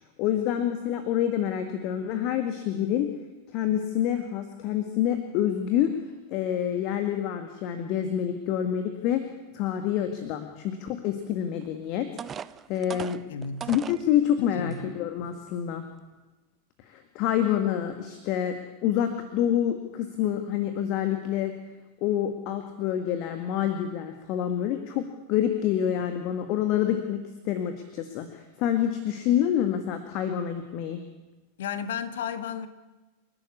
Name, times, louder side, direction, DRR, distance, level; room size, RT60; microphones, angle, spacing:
voice 1, 0.2-3.1 3.5-6.0 6.3-9.2 9.5-12.3 12.7-13.2 13.7-15.8 16.8-18.6 18.8-21.5 22.0-31.0, left 10 dB, 40° left, 1.8 m, -27 dB
sound 1, 11.6-11.7 12.2-14.0 14.7-14.8 15.3-15.5, right 8 dB, 25° right, 0.7 m, -38 dB
voice 2, 13.3-13.7 14.4-14.9 31.6-32.7, left 6 dB, 60° left, 1.6 m, -33 dB
29.0 x 12.0 x 8.5 m
figure-of-eight pair, 90°, 0 cm